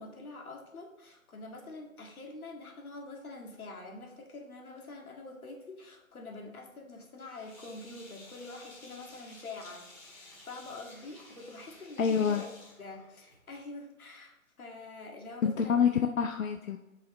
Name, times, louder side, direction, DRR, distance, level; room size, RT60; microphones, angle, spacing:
voice 1, 0.0-15.8, left 3 dB, 85° left, 1 dB, 1.9 m, -46 dB
Sink (filling or washing), 7.2-13.6, left 2 dB, 15° left, 2.1 m, -53 dB
voice 2, 12.0-12.4 15.4-16.8, left 7 dB, 70° left, 5 dB, 0.6 m, -27 dB
9.9 x 5.6 x 3.1 m, 1.0 s
hypercardioid pair, 170°, 42 cm